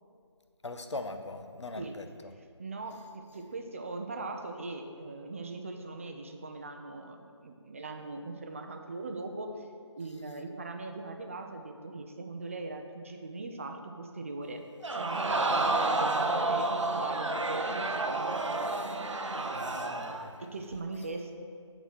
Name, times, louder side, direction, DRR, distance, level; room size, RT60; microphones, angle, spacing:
voice 1, 0.6-2.1 19.5-20.3, left 2 dB, 75° left, 7 dB, 0.7 m, -40 dB
voice 2, 2.6-9.7 9.9-14.6 14.9-19.0 20.4-21.4, right 3 dB, 30° right, 5 dB, 0.5 m, -40 dB
Crowd, 14.8-20.3 20.7-20.8, right 2 dB, 90° right, 0.7 m, -30 dB
7.7 x 3.9 x 6.3 m, 2.3 s
figure-of-eight pair, 160°, 15 cm